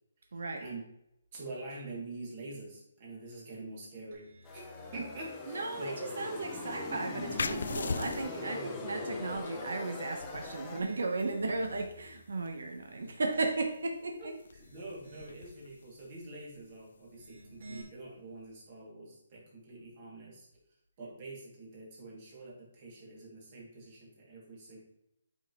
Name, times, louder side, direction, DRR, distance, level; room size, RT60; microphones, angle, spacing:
voice 1, 0.3-0.7 5.5-14.3, right 3 dB, 75° right, 4 dB, 0.9 m, -35 dB
voice 2, 1.3-4.3 4.5-4.7 4.9-6.0 8.3-8.7 14.2-14.3 14.5-20.5 21.0-24.8, right 2 dB, 25° right, -4 dB, 2.3 m, -45 dB
sound 1, 4.1-5.4 5.9-7.1 7.6-8.7 10.2-12.3 12.8-14.0 14.4-15.6 17.0-17.8, right 1 dB, 45° right, 1.9 m, -53 dB
sound 2, 4.4-10.8, left 3 dB, 10° left, 0.6 m, -41 dB
sound 3, 7.4-18.6, left 4 dB, 65° left, 0.4 m, -44 dB
8.9 x 5.5 x 3.0 m, 0.82 s
hypercardioid pair, 175°, 0 cm